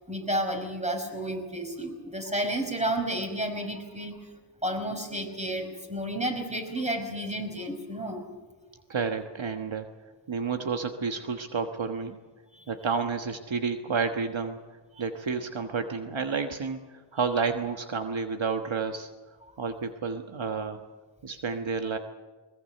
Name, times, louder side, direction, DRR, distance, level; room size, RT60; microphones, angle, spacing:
voice 1, 0.1-4.3 4.6-8.3 12.5-12.6 19.5-19.6, right 1 dB, 15° right, 4 dB, 5.3 m, -31 dB
voice 2, 8.9-9.9 10.3-12.2 12.7-14.6 15.0-19.1 19.6-20.8 21.2-22.0, right 5 dB, 75° right, 6 dB, 1.4 m, -30 dB
21.5 x 20.5 x 7.8 m, 1.3 s
wide cardioid pair, 60°, 47 cm